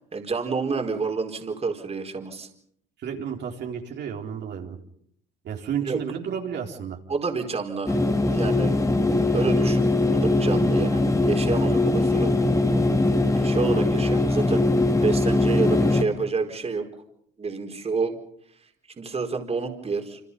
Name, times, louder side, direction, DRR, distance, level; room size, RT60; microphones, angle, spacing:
voice 1, 0.1-2.5 5.8-6.0 7.1-8.0 8.2-8.7 9.3-9.9 10.1-12.3 13.4-14.7 15.0-16.9 17.4-18.2 18.6-20.2, right 4 dB, 30° right, 4 dB, 4.4 m, -29 dB
voice 2, 3.0-4.8 5.4-7.0, right 8 dB, 60° right, 0 dB, 4.3 m, -32 dB
sound 1, 7.9-16.0, left 2 dB, 15° left, 2.7 m, -21 dB
28.0 x 26.5 x 5.5 m, 0.69 s
supercardioid pair, 85°, 20 cm